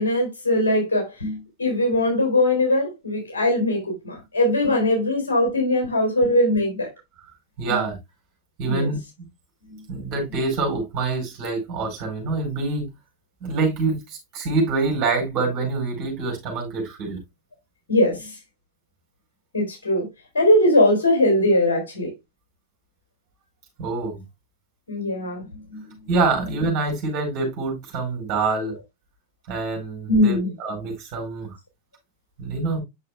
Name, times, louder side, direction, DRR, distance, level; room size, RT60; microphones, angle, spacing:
voice 1, 0.0-6.9 7.7-7.8 8.7-8.9 17.9-18.4 19.5-20.1 20.3-22.1 24.9-25.4 25.7-25.8 30.1-30.5, left 1 dB, 70° left, 3.8 m, -21 dB
voice 2, 7.6-7.9 8.6-9.3 9.9-12.8 13.4-17.2 23.8-24.2 26.1-28.7 29.5-31.5 32.4-32.8, right 3 dB, 40° right, 4.7 m, -25 dB
9.1 x 6.7 x 2.3 m
figure-of-eight pair, 90°, 0 cm